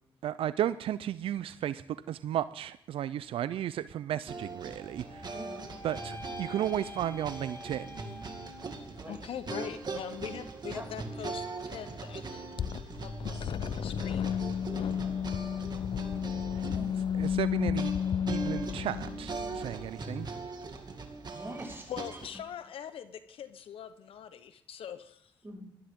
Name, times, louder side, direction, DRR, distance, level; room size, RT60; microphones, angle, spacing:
voice 1, 0.2-1.8 2.1-5.3 5.8-8.0 17.1-17.9 18.3-20.3, right 11 dB, 85° right, 15 dB, 0.5 m, -34 dB
sound 1, 4.3-22.4, right 3 dB, 50° right, 2.1 m, -41 dB
sound 2, 4.7-9.0, left 2 dB, 30° left, 2.4 m, -47 dB
voice 2, 5.3-5.7 9.0-9.2 10.7-10.8 14.7-15.2 16.7-16.9 21.3-21.9 25.4-25.6, right 1 dB, 25° right, 1 dB, 6.2 m, -43 dB
voice 3, 9.1-12.5 13.0-13.5 13.8-14.4 21.9-25.3, left 9 dB, 80° left, 11 dB, 0.9 m, -42 dB
sound 3, 12.6-19.9, left 8 dB, 65° left, 0.4 m, -32 dB
17.5 x 13.0 x 3.7 m, 0.75 s
cardioid pair, 60°, 9 cm